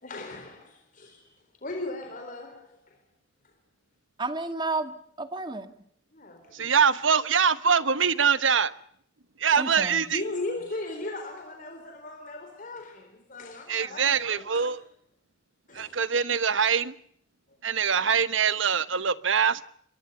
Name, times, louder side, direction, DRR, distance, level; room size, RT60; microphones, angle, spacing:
voice 1, 0.0-1.3 1.6-3.0 6.1-6.7 8.0-8.1 9.9-14.7 15.7-16.0 17.6-17.9, left 2 dB, 45° left, 4.0 m, -38 dB
voice 2, 4.2-5.7 9.6-10.1, right 3 dB, 25° right, 2.1 m, -32 dB
voice 3, 6.5-8.7 9.4-10.2 13.7-14.8 15.7-16.9 17.6-19.6, right 6 dB, 90° right, 1.1 m, -23 dB
27.5 x 23.0 x 5.5 m
head